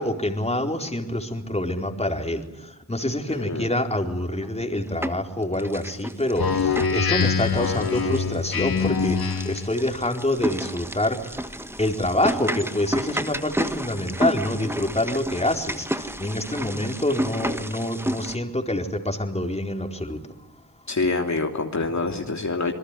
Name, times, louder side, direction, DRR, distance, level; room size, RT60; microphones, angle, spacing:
voice 1, 0.0-2.4 2.9-11.4 11.8-20.2, left 1 dB, 15° left, 4 dB, 4.4 m, -26 dB
voice 2, 3.3-3.7 20.9-22.7, left 3 dB, 50° left, 2 dB, 3.2 m, -26 dB
sound 1, 4.4-5.3 5.6-18.4, right 1 dB, 5° right, 1.6 m, -31 dB
Speech synthesizer, 6.4-9.7, left 5 dB, 75° left, 2.7 m, -24 dB
27.5 x 21.5 x 10.0 m, 0.97 s
cardioid pair, 65°, 37 cm